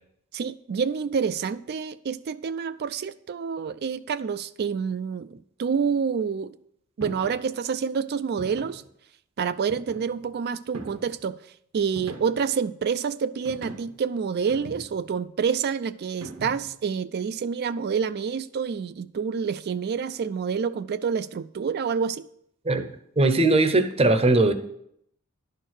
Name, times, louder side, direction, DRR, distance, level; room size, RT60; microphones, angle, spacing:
voice 1, 0.3-6.5 7.0-8.8 9.4-11.4 11.7-22.3, right 6 dB, 50° right, 0.4 m, -28 dB
sound 1, 7.0-7.4 8.4-8.9 9.7-10.3 10.7-11.2 12.0-12.5 13.4-14.0 14.5-15.1 16.2-16.8, right 1 dB, 85° right, 1.1 m, -41 dB
voice 2, 22.6-24.5, right 2 dB, 30° right, 0.7 m, -20 dB
11.0 x 4.5 x 6.4 m
head